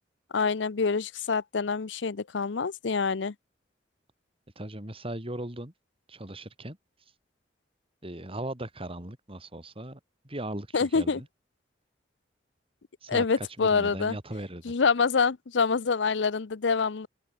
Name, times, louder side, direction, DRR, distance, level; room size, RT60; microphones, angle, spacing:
voice 1, 0.3-3.3 10.7-11.2 13.1-14.2 14.6-17.1, left 5 dB, 70° left, 0.6 m, -26 dB
voice 2, 4.6-5.7 6.1-6.8 8.0-10.0 10.2-11.3 13.0-14.7, right 1 dB, 30° right, 4.3 m, -38 dB
open air
head